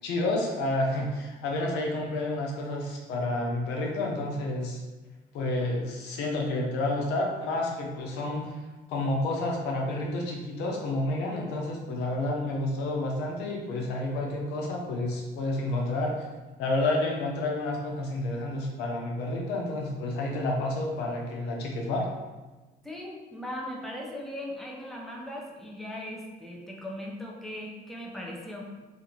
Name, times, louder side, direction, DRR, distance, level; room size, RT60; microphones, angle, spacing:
voice 1, 0.0-4.8 5.3-8.6 8.9-16.3 16.6-22.1, left 2 dB, 85° left, 0 dB, 0.7 m, -30 dB
voice 2, 22.8-28.7, left 1 dB, ahead, -2 dB, 0.6 m, -38 dB
2.7 x 2.5 x 4.2 m, 1.2 s
cardioid pair, 110°, 17 cm